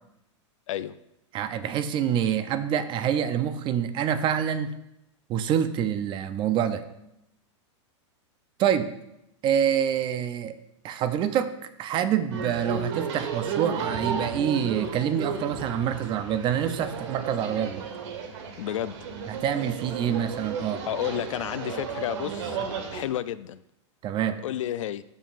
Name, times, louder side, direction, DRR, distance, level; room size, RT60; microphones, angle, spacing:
voice 1, 1.3-4.7 5.3-6.8 8.6-8.9 9.4-10.5 10.8-11.5 11.8-17.9 19.3-20.8 24.0-24.4, right 9 dB, 30° right, 11 dB, 0.6 m, -26 dB
sound 1, 12.3-23.1, right 6 dB, 65° right, 1.3 m, -34 dB
voice 2, 18.6-19.0 20.9-22.6 22.9-23.6 24.4-25.0, left 12 dB, 90° left, 15 dB, 0.4 m, -31 dB
13.0 x 5.3 x 2.5 m, 0.83 s
supercardioid pair, 135°, 16 cm